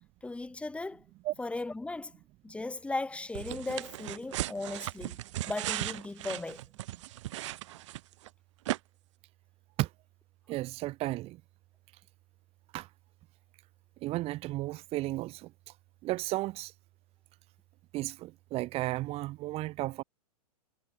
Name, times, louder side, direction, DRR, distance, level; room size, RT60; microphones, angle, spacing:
voice 1, 0.2-1.0 1.4-2.1 2.4-5.2 5.5-6.6, left 2 dB, 5° left, 5.2 m, -37 dB
sound 1, 3.3-8.3 8.6-8.8, right 15 dB, 45° right, 4.7 m, -37 dB
voice 2, 10.5-11.4 12.7-12.9 14.0-15.5 16.0-16.7 17.9-20.0, right 18 dB, 30° right, 3.0 m, -33 dB
figure-of-eight pair, 105°, 20 cm